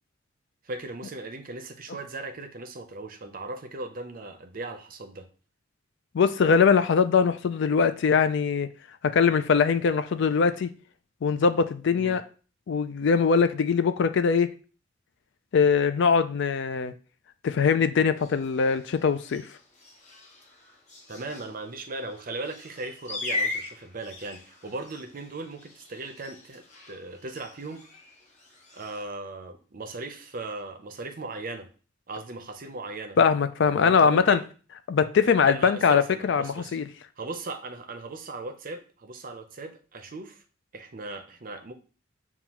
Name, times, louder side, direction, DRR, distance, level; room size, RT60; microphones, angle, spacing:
voice 1, 0.6-5.3 12.0-12.2 21.1-27.8 28.7-31.7 32.1-33.2 33.8-34.4 35.4-36.8 37.2-40.4 40.7-41.7, right 2 dB, 45° right, 0.6 m, -38 dB
voice 2, 6.1-8.7 9.1-10.7 11.2-12.2 12.7-14.5 15.5-16.9 17.4-19.4 33.2-34.4 34.9-36.9, left 6 dB, 60° left, 0.4 m, -22 dB
sound 1, 18.1-29.0, left 2 dB, 35° left, 1.0 m, -40 dB
7.0 x 2.4 x 2.9 m
head